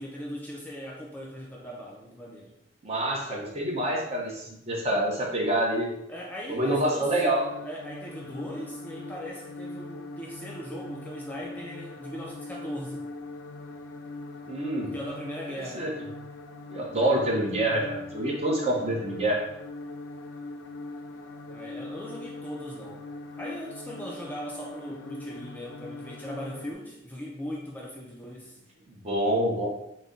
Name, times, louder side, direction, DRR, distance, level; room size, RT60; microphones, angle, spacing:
voice 1, 0.0-2.5 6.1-13.1 14.9-15.9 21.5-23.1 23.4-28.6, equal, 10° left, -3 dB, 0.4 m, -39 dB
voice 2, 2.8-5.9 6.5-7.4 14.5-14.9 15.7-15.9 16.7-19.4 28.9-29.7, right 1 dB, 35° right, -1 dB, 0.7 m, -26 dB
sound 1, 7.3-26.7, left 2 dB, 85° left, 0.3 m, -41 dB
3.9 x 2.1 x 3.7 m, 0.82 s
head